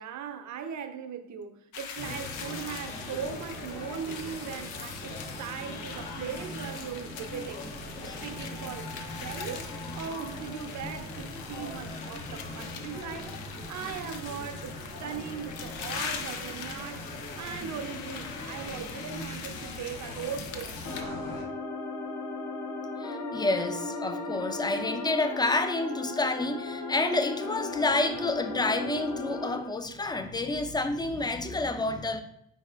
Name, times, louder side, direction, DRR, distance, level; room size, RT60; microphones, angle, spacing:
voice 1, 0.0-7.7 8.0-8.9 9.2-9.7 9.9-13.4 13.7-17.1 17.4-21.3, right 7 dB, 55° right, 0.6 m, -39 dB
sound 1, 1.7-21.0, left 6 dB, 85° left, 0.5 m, -42 dB
sound 2, 2.0-21.4, left 1 dB, 70° left, 1.4 m, -41 dB
sound 3, 20.8-29.6, left 2 dB, 55° left, 1.0 m, -36 dB
voice 2, 23.0-32.2, left 2 dB, 10° left, 0.5 m, -29 dB
4.8 x 4.0 x 2.4 m
hypercardioid pair, 45°, 36 cm